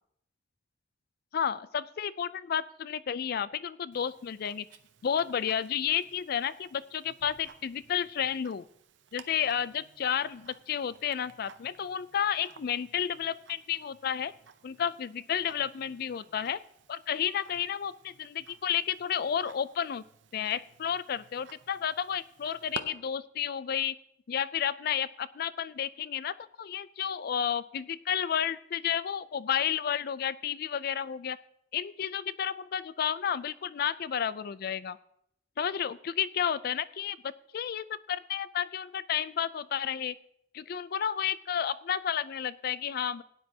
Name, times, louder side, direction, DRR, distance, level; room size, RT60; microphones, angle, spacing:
voice 1, 1.3-4.6 5.0-8.6 9.1-14.3 14.6-16.6 16.9-20.0 20.3-24.0 24.3-31.4 31.7-35.0 35.6-40.1 40.5-43.2, left 8 dB, 55° left, 17 dB, 0.4 m, -31 dB
Tick-tock, 3.9-22.8, right 5 dB, 75° right, 0.7 m, -53 dB
17.0 x 9.7 x 2.8 m, 0.74 s
head